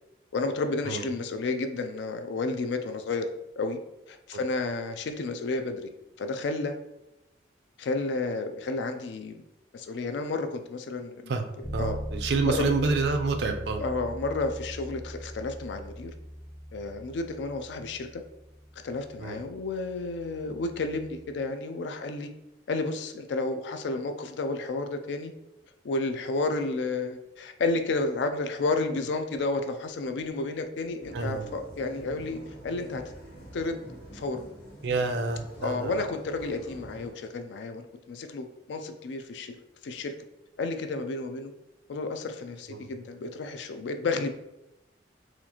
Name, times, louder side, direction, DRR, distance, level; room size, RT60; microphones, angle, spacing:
voice 1, 0.3-3.3 3.6-3.8 4.1-5.9 6.2-6.8 7.8-9.4 9.7-12.0 12.5-12.7 13.8-16.1 16.7-18.2 18.8-22.3 22.7-25.3 25.8-33.0 33.5-34.5 35.6-39.5 39.8-40.1 40.6-41.5 41.9-44.3, left 3 dB, 75° left, 7 dB, 0.4 m, -31 dB
Bass guitar, 11.6-21.4, equal, 10° left, 0.5 m, -41 dB
voice 2, 11.7-13.8 19.2-19.4 31.1-31.4 34.8-36.0 42.7-42.9, right 3 dB, 70° right, 6 dB, 0.4 m, -28 dB
sound 1, 31.0-37.1, right 1 dB, 55° left, 1.1 m, -46 dB
4.2 x 2.4 x 2.8 m, 0.92 s
head